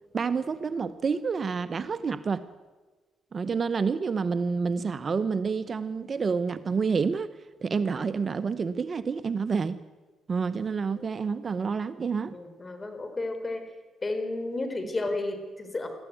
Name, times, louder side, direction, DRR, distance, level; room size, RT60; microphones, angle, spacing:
voice 1, 0.1-2.4 3.3-7.3 7.6-9.8 10.3-12.4, right 5 dB, 40° right, 13 dB, 0.8 m, -28 dB
voice 2, 12.3-13.7 14.0-15.9, left 2 dB, 25° left, 7 dB, 3.9 m, -32 dB
20.5 x 14.0 x 9.3 m, 1.3 s
cardioid pair, 90°, 0 cm